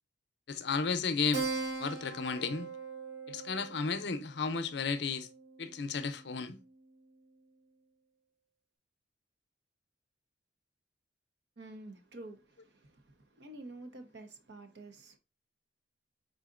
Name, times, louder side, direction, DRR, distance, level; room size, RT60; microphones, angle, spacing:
voice 1, 0.5-1.5 1.8-2.7 3.3-5.3 5.6-6.6, left 5 dB, 65° left, 0.6 m, -33 dB
Keyboard (musical), 1.3-6.3, right 4 dB, 85° right, 1.0 m, -41 dB
voice 2, 11.6-15.2, right 2 dB, 65° right, 0.9 m, -49 dB
4.9 x 3.9 x 2.4 m
head